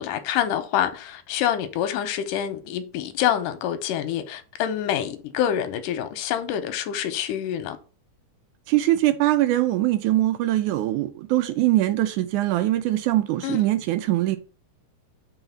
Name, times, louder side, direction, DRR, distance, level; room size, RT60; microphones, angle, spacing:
voice 1, 0.0-7.8 13.4-13.7, left 10 dB, 90° left, 2.3 m, -26 dB
voice 2, 8.7-14.4, right 15 dB, 80° right, 2.0 m, -22 dB
4.9 x 4.0 x 5.6 m
omnidirectional pair, 3.7 m